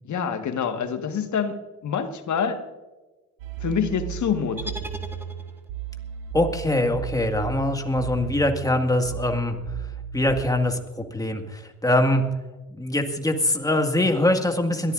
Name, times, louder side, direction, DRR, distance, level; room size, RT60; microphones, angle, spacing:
voice 1, 0.0-1.6 1.8-2.6 3.6-4.8, left 7 dB, 50° left, 7 dB, 1.6 m, -26 dB
sound 1, 3.4-10.3, right 8 dB, 85° right, 1.4 m, -35 dB
sound 2, 4.6-5.9, right 1 dB, 5° right, 1.4 m, -38 dB
voice 2, 6.3-9.6 10.1-12.2 12.7-14.9, left 1 dB, 10° left, 5 dB, 1.9 m, -23 dB
22.0 x 14.0 x 2.6 m, 1.2 s
hypercardioid pair, 55°, 37 cm